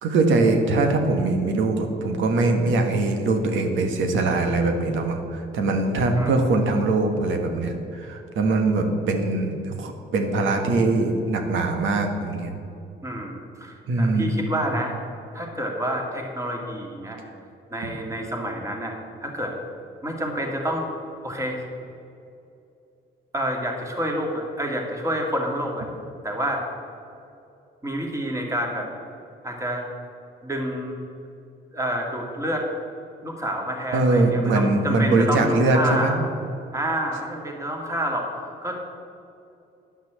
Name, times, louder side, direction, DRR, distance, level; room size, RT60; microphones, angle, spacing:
voice 1, 0.0-12.5 13.9-14.3 33.9-36.1, right 2 dB, 80° right, 4 dB, 1.5 m, -22 dB
voice 2, 13.0-14.9 15.3-17.2 17.7-19.5 20.0-20.9 21.2-21.7 23.3-25.9 26.2-26.6 27.8-28.9 29.4-29.9 30.4-31.0 31.7-32.7 33.2-36.2 36.7-38.3 38.6-38.8, right 1 dB, 15° right, 0 dB, 2.0 m, -28 dB
10.5 x 5.9 x 7.6 m, 2.7 s
cardioid pair, 90°, 20 cm